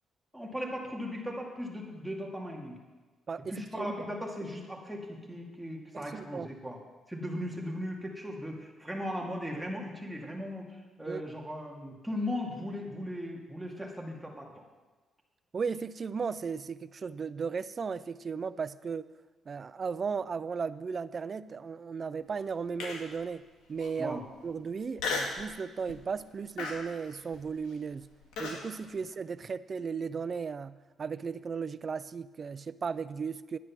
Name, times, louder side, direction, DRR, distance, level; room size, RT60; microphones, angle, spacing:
voice 1, 0.3-2.8 3.5-6.8 7.1-14.5 24.0-24.2, equal, 5° right, -1 dB, 2.3 m, -38 dB
voice 2, 3.3-3.9 5.9-6.5 11.1-11.2 15.5-19.1 19.5-23.4 23.7-28.1 28.4-33.6, right 5 dB, 40° right, 16 dB, 0.4 m, -36 dB
Human voice, 22.8-23.2 23.8-23.9 25.0-25.4 25.9-26.2 26.6-28.6, left 4 dB, 90° left, 1.9 m, -35 dB
11.0 x 9.7 x 5.9 m, 1.2 s
cardioid pair, 90°, 0 cm